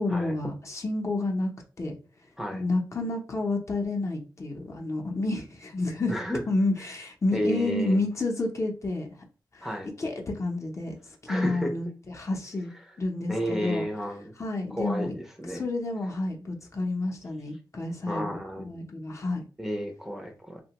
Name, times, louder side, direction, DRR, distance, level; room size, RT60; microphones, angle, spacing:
voice 1, 0.0-1.5 1.8-1.9 2.5-6.1 6.5-9.1 9.5-11.9 12.2-12.7 13.0-13.8 14.4-15.2 15.5-19.4, left 2 dB, 40° left, 1 dB, 0.6 m, -30 dB
voice 2, 6.1-6.4 7.3-8.0 9.6-9.9 11.3-11.7 13.3-14.3 14.7-15.6 18.1-18.7 19.6-20.6, equal, 5° right, 1 dB, 0.5 m, -32 dB
2.7 x 2.1 x 2.8 m, 0.35 s
wide cardioid pair, 90°, 8 cm